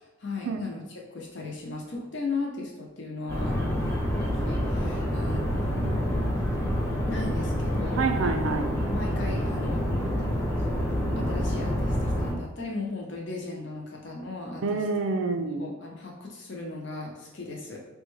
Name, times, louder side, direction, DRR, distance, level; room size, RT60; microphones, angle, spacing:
voice 1, 0.2-0.8 1.1-6.2 7.1-8.1 8.8-9.8 10.7-10.8 11.1-14.8 15.6-17.8, left 3 dB, 60° left, -1 dB, 0.7 m, -36 dB
sound 1, 3.3-12.3, equal, 15° left, 0.5 m, -27 dB
voice 2, 8.0-8.8 14.6-15.7, right 4 dB, 75° right, 6 dB, 0.4 m, -27 dB
3.4 x 2.2 x 3.1 m, 1.0 s
head